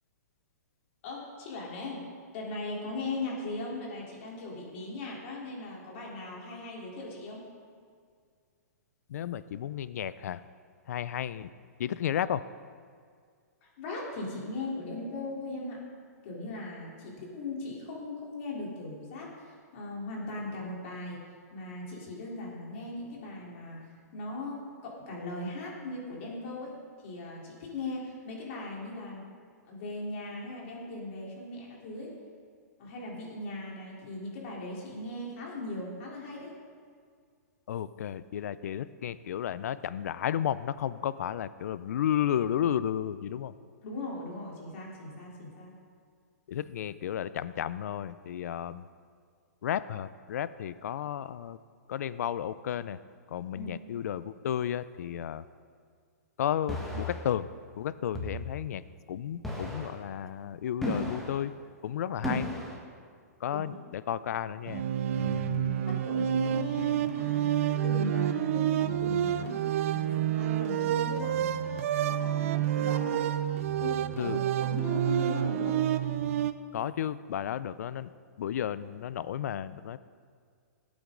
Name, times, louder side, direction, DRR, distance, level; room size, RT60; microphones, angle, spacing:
voice 1, 1.0-7.4 13.6-15.8 16.2-21.2 21.5-26.8 27.0-29.2 29.7-32.1 32.8-36.5 43.8-45.7 53.5-53.8 63.5-63.8 65.8-69.6 69.9-71.7 72.0-73.3 73.8-75.8, left 2 dB, 50° left, -3 dB, 3.6 m, -39 dB
voice 2, 9.1-10.4 10.9-11.5 11.8-12.4 37.7-43.5 46.5-48.8 49.6-51.6 51.9-53.0 53.3-55.4 56.4-57.5 57.8-58.8 59.1-61.5 61.8-62.5 63.4-64.8 65.2-65.8 74.2-74.4 76.7-78.1 78.4-80.0, left 10 dB, 65° left, 16 dB, 0.4 m, -33 dB
sound 1, 56.7-57.2 58.2-58.5 59.4-59.9 60.8-61.3 62.2-62.8, left 1 dB, 5° left, 1.6 m, -34 dB
sound 2, 64.7-76.5, right 10 dB, 50° right, 0.5 m, -28 dB
18.0 x 8.6 x 3.8 m, 2.1 s
hypercardioid pair, 145°, 9 cm